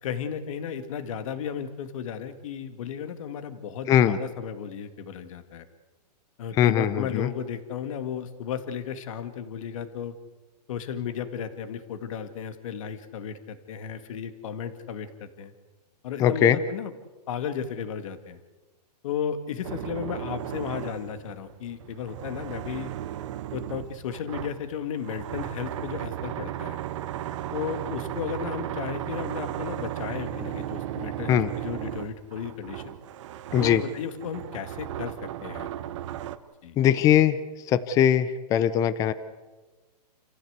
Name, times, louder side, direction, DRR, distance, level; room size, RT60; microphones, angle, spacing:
voice 1, 0.0-5.7 6.4-10.1 10.7-15.5 16.0-16.9 17.3-18.4 19.0-22.9 23.5-26.8 27.5-33.0 33.6-35.1 35.4-35.7 36.6-36.8, left 8 dB, 50° left, 9 dB, 2.1 m, -34 dB
voice 2, 3.9-4.2 6.5-7.3 16.2-16.6 31.3-31.5 33.5-33.8 36.8-37.4 37.7-39.1, left 10 dB, 15° left, 14 dB, 0.6 m, -21 dB
sound 1, 19.6-36.4, right 12 dB, 45° right, 1.2 m, -35 dB
28.5 x 15.0 x 8.1 m, 1.3 s
hypercardioid pair, 160°, 21 cm